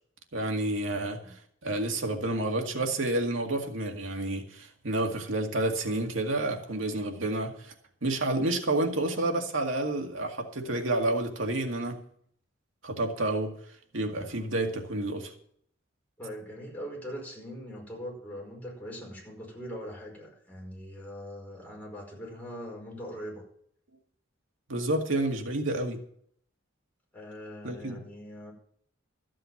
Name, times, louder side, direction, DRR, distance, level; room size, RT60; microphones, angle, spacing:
voice 1, 0.3-7.7 8.0-12.0 12.8-13.5 13.9-15.3 24.7-26.0 27.6-28.0, right 2 dB, 90° right, 2.1 m, -29 dB
voice 2, 0.9-1.3 16.2-23.4 27.1-28.5, equal, 10° left, 5.1 m, -41 dB
14.0 x 7.6 x 7.2 m
head